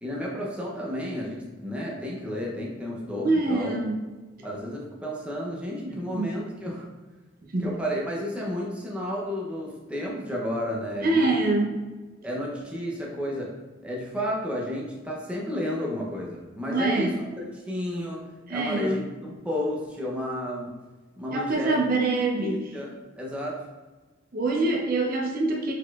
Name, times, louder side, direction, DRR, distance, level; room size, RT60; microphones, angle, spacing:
voice 1, 0.0-3.8 4.4-6.9 7.6-11.5 12.2-13.5 13.8-17.1 17.4-18.2 18.5-20.7 21.2-21.8 22.4-22.9 23.2-23.6, equal, 5° right, -4 dB, 0.6 m, -32 dB
voice 2, 3.2-3.9 5.9-6.3 7.5-7.8 11.0-11.7 16.7-17.1 18.5-19.0 21.3-22.8 24.3-25.7, right 2 dB, 45° right, 0 dB, 0.6 m, -25 dB
4.6 x 4.0 x 2.3 m, 1.2 s
head